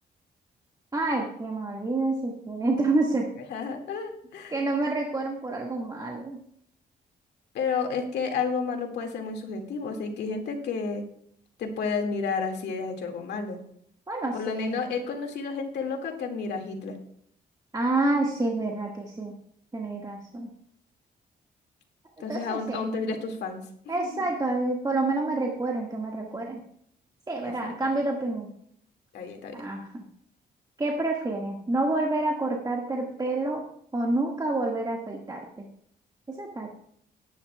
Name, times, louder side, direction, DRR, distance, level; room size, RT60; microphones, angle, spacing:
voice 1, 0.9-3.3 4.5-6.4 14.1-14.8 17.7-19.3 19.7-20.5 22.3-22.9 23.9-26.6 27.3-28.5 29.5-30.0 30.8-33.6 33.9-35.7 36.3-36.7, right 2 dB, 25° right, -1 dB, 1.8 m, -28 dB
voice 2, 3.5-4.5 7.5-11.0 11.6-13.6 14.3-17.0 22.2-24.2 27.4-27.8 29.1-29.6, left 5 dB, 90° left, 3 dB, 2.1 m, -31 dB
18.5 x 10.0 x 2.3 m, 0.66 s
cardioid pair, 80°, 17 cm